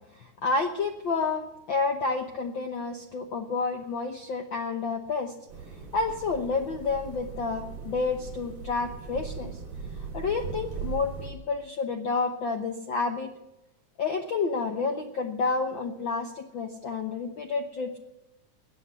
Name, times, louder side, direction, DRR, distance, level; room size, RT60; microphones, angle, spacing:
voice 1, 0.1-5.3 5.9-9.6 10.1-13.3 14.0-18.0, left 4 dB, 85° left, 4 dB, 1.0 m, -30 dB
sound 1, 5.5-11.3, right 5 dB, 50° right, 4.2 m, -39 dB
20.5 x 8.6 x 7.0 m, 0.88 s
omnidirectional pair, 3.7 m